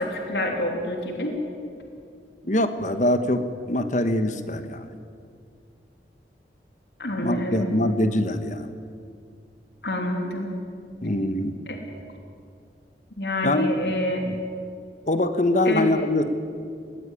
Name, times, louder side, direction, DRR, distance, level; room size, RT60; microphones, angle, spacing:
voice 1, 0.0-1.4 7.0-7.7 9.8-10.5 11.7-11.8 13.2-14.2 15.6-15.8, left 1 dB, 70° left, 3 dB, 3.2 m, -27 dB
voice 2, 2.4-3.4 3.7-4.9 7.2-8.7 11.0-11.5 13.4-13.7 14.2-14.4 15.1-16.2, left 1 dB, 45° left, 10 dB, 1.3 m, -23 dB
20.0 x 19.0 x 9.9 m, 2.3 s
head